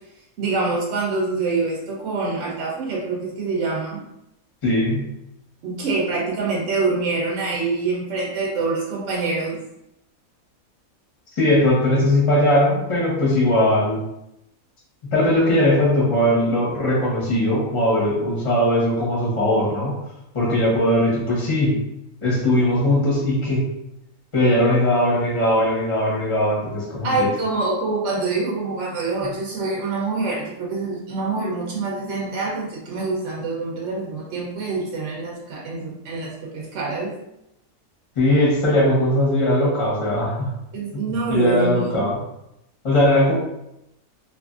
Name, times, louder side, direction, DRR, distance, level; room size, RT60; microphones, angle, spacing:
voice 1, 0.4-4.0 5.6-9.6 27.0-37.2 40.7-42.0, right 3 dB, 65° right, -3 dB, 0.8 m, -25 dB
voice 2, 4.6-5.1 11.3-14.0 15.0-20.0 20.3-21.9 22.2-23.7 24.3-27.3 29.2-29.3 38.2-40.6 41.1-42.2 42.8-43.3, left 1 dB, 25° left, -5 dB, 0.8 m, -19 dB
2.6 x 2.4 x 2.4 m, 0.84 s
omnidirectional pair, 1.5 m